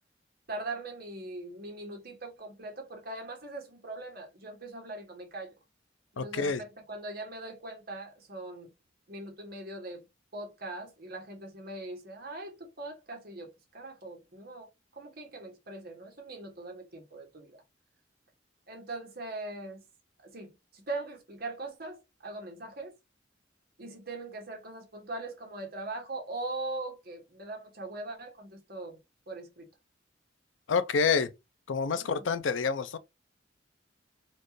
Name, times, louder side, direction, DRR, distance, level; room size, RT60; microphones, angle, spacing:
voice 1, 0.5-5.5 6.1-8.7 9.1-10.0 10.3-14.7 15.0-17.5 18.7-19.8 20.2-22.9 23.8-29.0 29.3-29.7 32.0-32.2, right 2 dB, 50° right, 1.3 m, -41 dB
voice 2, 6.2-6.6 30.7-31.3 31.7-33.0, left 5 dB, 80° left, 0.5 m, -28 dB
4.3 x 2.4 x 3.1 m
head